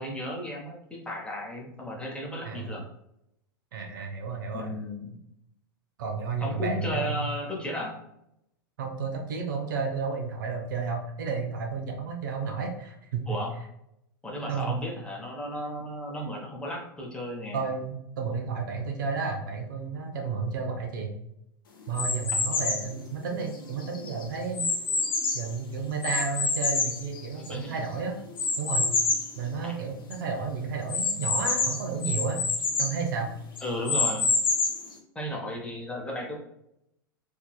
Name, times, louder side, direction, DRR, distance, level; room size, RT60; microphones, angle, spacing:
voice 1, 0.0-2.9 4.5-5.2 6.4-8.0 13.3-13.5 14.2-17.7 27.4-27.8 29.6-29.7 33.6-34.3 35.1-36.3, equal, 10° left, -2 dB, 0.9 m, -34 dB
voice 2, 2.4-2.8 3.7-4.7 6.0-7.3 8.8-13.4 14.5-14.8 17.5-21.1 21.9-24.7 25.3-28.1 28.6-28.9 29.4-32.4 32.8-33.3, right 5 dB, 60° right, 2 dB, 0.7 m, -32 dB
sound 1, 21.9-22.9 23.5-25.5 26.0-27.7 28.4-29.3 29.8-29.9 30.1-30.2 30.9-33.0 33.6-34.9, left 3 dB, 70° left, 0.8 m, -27 dB
4.6 x 2.8 x 2.3 m, 0.80 s
figure-of-eight pair, 90°, 12 cm